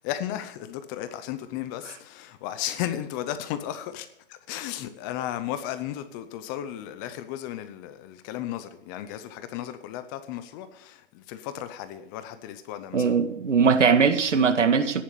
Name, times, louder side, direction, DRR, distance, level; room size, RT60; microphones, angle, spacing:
voice 1, 0.0-13.1, left 11 dB, 15° left, 0.6 m, -35 dB
voice 2, 12.9-15.0, right 5 dB, 85° right, 2.0 m, -20 dB
14.0 x 10.5 x 6.8 m
hypercardioid pair, 145°, 36 cm